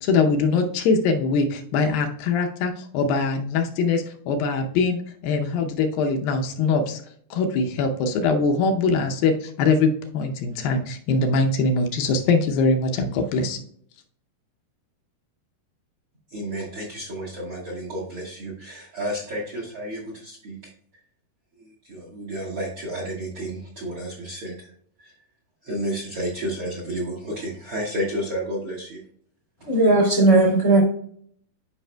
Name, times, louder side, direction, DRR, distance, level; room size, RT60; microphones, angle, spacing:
voice 1, 0.0-7.0 7.3-13.6, left 4 dB, 80° left, 3 dB, 2.2 m, -22 dB
voice 2, 16.3-20.6 21.6-24.7 25.0-25.1 25.6-29.0, equal, 85° right, -2 dB, 1.1 m, -31 dB
voice 3, 29.7-30.8, right 2 dB, 50° left, -2 dB, 0.8 m, -16 dB
12.5 x 5.1 x 2.2 m, 0.62 s
omnidirectional pair, 4.8 m